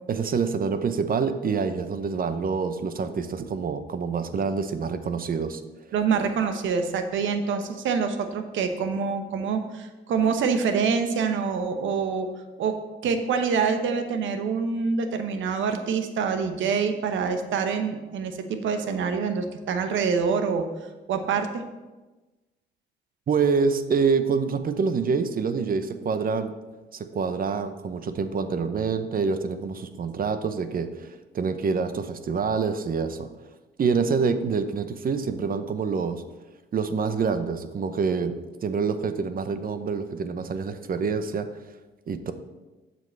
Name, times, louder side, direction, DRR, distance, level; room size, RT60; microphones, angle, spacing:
voice 1, 0.1-5.6 23.3-26.5 26.9-33.3 33.8-36.2 36.7-38.3 38.6-41.5 42.1-42.3, right 5 dB, 45° right, 10 dB, 0.8 m, -26 dB
voice 2, 5.9-12.3 12.6-20.7 21.1-21.6, right 5 dB, 75° right, 7 dB, 1.1 m, -26 dB
7.6 x 5.4 x 6.6 m, 1.2 s
cardioid pair, 90°, 20 cm